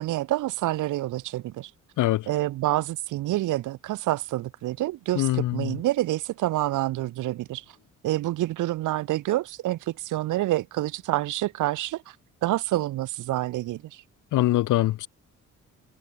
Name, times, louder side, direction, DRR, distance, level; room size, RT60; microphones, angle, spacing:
voice 1, 0.0-1.7 2.3-7.6 8.0-12.1 12.4-14.0, right 16 dB, 90° right, 2.5 m, -27 dB
voice 2, 5.2-5.7 14.3-15.1, left 15 dB, 85° left, 2.0 m, -23 dB
cardioid pair, 90°, 30 cm